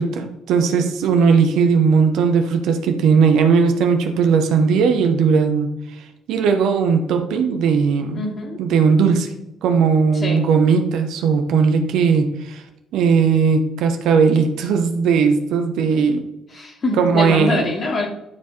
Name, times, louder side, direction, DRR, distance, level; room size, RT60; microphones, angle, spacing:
voice 1, 0.0-5.7 6.3-8.2 8.6-9.3 9.6-12.6 12.9-16.2 17.0-17.7, right 5 dB, 65° right, 6 dB, 1.1 m, -17 dB
voice 2, 8.1-8.6 10.1-10.5 16.5-18.1, left 2 dB, 40° left, 1 dB, 2.7 m, -24 dB
12.0 x 4.8 x 4.3 m, 0.90 s
figure-of-eight pair, 45°, 0 cm